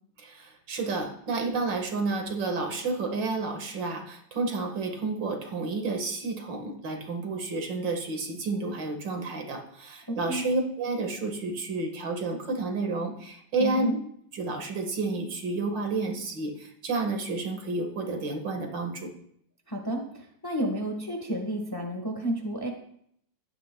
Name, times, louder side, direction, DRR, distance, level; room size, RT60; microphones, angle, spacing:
voice 1, 0.2-13.9 14.3-19.1, right 3 dB, 70° right, 3 dB, 2.3 m, -30 dB
voice 2, 13.6-14.0 19.7-22.7, right 1 dB, 15° left, 1 dB, 1.1 m, -31 dB
15.5 x 11.0 x 2.2 m, 0.69 s
omnidirectional pair, 2.1 m